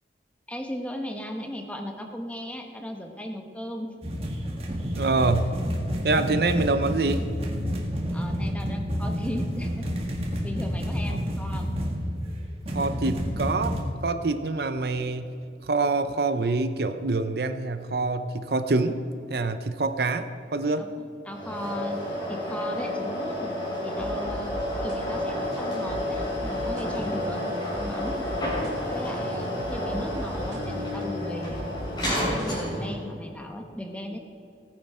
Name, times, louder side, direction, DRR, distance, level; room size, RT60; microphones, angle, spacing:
voice 1, 0.5-3.9 8.1-9.9 10.4-11.7 20.8-22.0 22.3-23.5 23.8-24.5 24.8-28.3 28.9-31.7 32.0-34.2, equal, 10° left, 3 dB, 1.1 m, -36 dB
sound 1, 4.0-13.8, equal, 35° right, 1.6 m, -29 dB
voice 2, 5.0-5.6 6.0-7.3 11.1-11.2 12.7-15.3 15.6-19.0 19.3-20.9, right 3 dB, 65° right, 9 dB, 0.6 m, -26 dB
sound 2, 21.3-33.0, left 1 dB, 25° left, 3.7 m, -30 dB
sound 3, 24.0-32.5, equal, 85° right, 2.2 m, -40 dB
18.0 x 9.7 x 4.4 m, 2.7 s
head